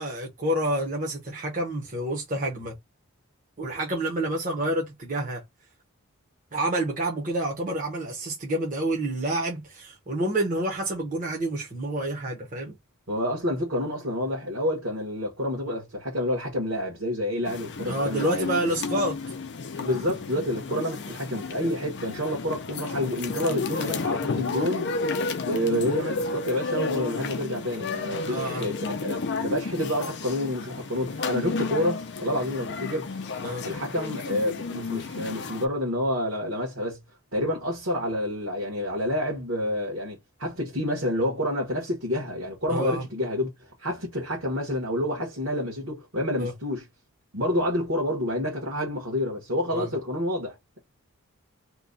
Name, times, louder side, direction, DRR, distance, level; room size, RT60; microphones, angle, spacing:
voice 1, 0.0-2.7 3.6-5.4 6.5-12.7 17.9-19.2 28.2-28.7 33.4-33.6 42.7-43.0 46.4-46.5 49.7-49.9, right 1 dB, 40° right, 0.9 m, -28 dB
voice 2, 13.1-18.5 19.8-24.9 25.5-33.1 33.6-37.0 37.3-43.5 43.8-46.8 47.3-50.8, left 1 dB, 60° right, 1.3 m, -28 dB
sound 1, 17.4-35.7, left 4 dB, 55° left, 0.5 m, -32 dB
3.0 x 2.2 x 3.8 m
head